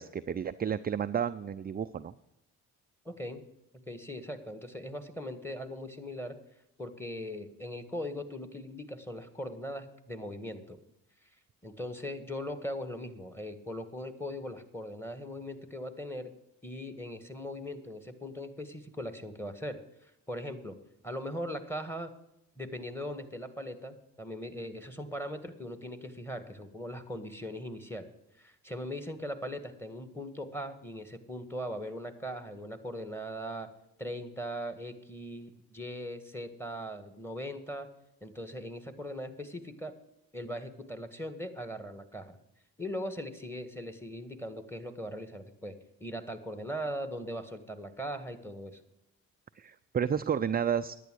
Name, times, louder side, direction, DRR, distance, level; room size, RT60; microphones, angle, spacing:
voice 1, 0.0-2.1 49.6-51.0, right 8 dB, 20° right, 11 dB, 0.4 m, -31 dB
voice 2, 3.0-3.4 3.8-6.3 6.8-10.8 11.6-16.3 16.6-20.8 21.0-22.1 22.6-28.1 28.4-33.7 34.0-37.9 38.2-39.9 40.3-42.4 42.8-45.7 46.0-48.8, equal, 5° left, 10 dB, 1.8 m, -39 dB
10.5 x 9.1 x 6.3 m, 0.86 s
hypercardioid pair, 55°, 44 cm